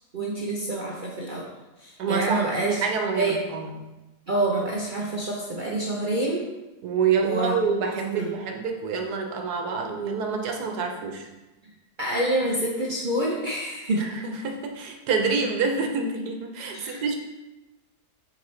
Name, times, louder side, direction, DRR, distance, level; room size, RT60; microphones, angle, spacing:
voice 1, 0.1-1.5 1.8-2.8 3.2-3.4 4.3-6.4 7.2-7.6 8.1-8.3 12.0-14.0 16.7-17.2, right 2 dB, 45° right, -3 dB, 0.7 m, -27 dB
voice 2, 2.0-3.7 6.8-11.3 13.9-17.2, right 5 dB, 90° right, 3 dB, 1.4 m, -27 dB
7.2 x 5.0 x 3.2 m, 1.1 s
omnidirectional pair, 1.6 m